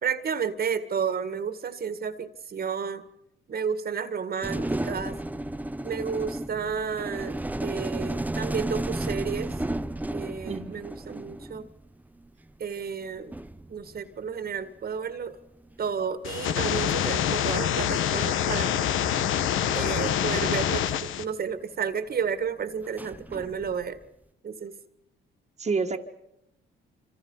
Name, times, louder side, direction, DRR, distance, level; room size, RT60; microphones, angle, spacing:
voice 1, 0.0-3.0 3.5-5.2 5.8-9.6 10.1-11.6 12.6-13.3 13.7-15.4 15.8-18.7 19.7-24.0 24.4-24.7, right 6 dB, 50° right, 12 dB, 2.0 m, -31 dB
sound 1, 4.4-11.9 13.0-13.1 13.3-14.6 15.7-16.0 17.2-17.3 17.8-18.1 18.9-21.3 22.8-24.0, right 1 dB, 10° right, 0.8 m, -34 dB
voice 2, 10.4-10.8 25.6-26.0, right 4 dB, 35° right, 2 dB, 1.7 m, -28 dB
sound 2, 16.2-21.2, left 10 dB, 80° left, 1.3 m, -26 dB
27.0 x 26.0 x 5.6 m, 0.83 s
cardioid pair, 90°, 20 cm